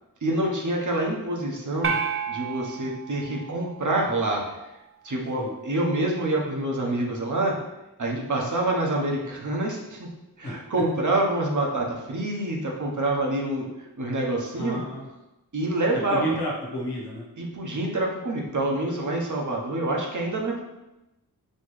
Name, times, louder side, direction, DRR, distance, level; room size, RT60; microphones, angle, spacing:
voice 1, 0.2-1.9 2.3-4.6 5.0-7.5 8.0-10.1 10.4-13.7 14.0-14.8 15.5-16.3 17.4-20.6, right 1 dB, 55° right, -1 dB, 1.0 m, -26 dB
sound 1, 1.8-4.3, right 6 dB, 35° right, 0.4 m, -31 dB
voice 2, 14.5-15.1 16.1-17.3, right 1 dB, 90° left, -3 dB, 1.2 m, -31 dB
4.3 x 3.1 x 3.2 m, 0.95 s
cardioid pair, 55°, 37 cm